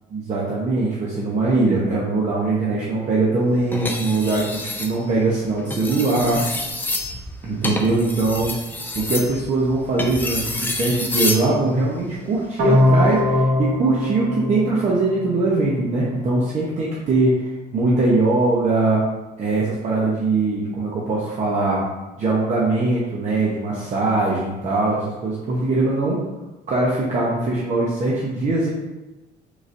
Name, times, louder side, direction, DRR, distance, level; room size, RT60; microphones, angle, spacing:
voice 1, 0.1-6.4 7.4-8.5 8.9-19.0 19.4-21.8 22.2-26.2 26.7-28.7, right 3 dB, 45° right, -5 dB, 0.9 m, -21 dB
sound 1, 3.7-4.9 5.6-11.5 12.9-13.2, left 2 dB, 10° left, 0.5 m, -28 dB
sound 2, 12.6-15.6, left 1 dB, 85° right, 1.0 m, -20 dB
4.8 x 3.9 x 2.7 m, 1.1 s
cardioid pair, 110°, 17 cm